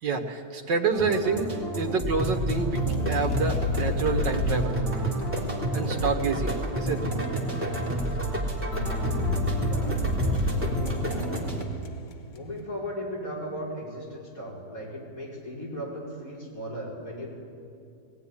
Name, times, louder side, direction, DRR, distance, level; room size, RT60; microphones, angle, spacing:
voice 1, 0.0-4.8 5.7-7.1, right 4 dB, 90° right, 4 dB, 2.2 m, -28 dB
sound 1, 0.9-11.7, right 1 dB, 25° right, 2.7 m, -33 dB
sound 2, 2.2-11.7, right 1 dB, 5° right, 2.8 m, -31 dB
sound 3, 2.7-5.7 8.7-12.2, left 3 dB, 85° left, 2.0 m, -30 dB
voice 2, 9.4-11.1 12.3-17.3, equal, 50° left, -3 dB, 5.9 m, -37 dB
19.0 x 18.5 x 9.9 m, 2.4 s
omnidirectional pair, 1.9 m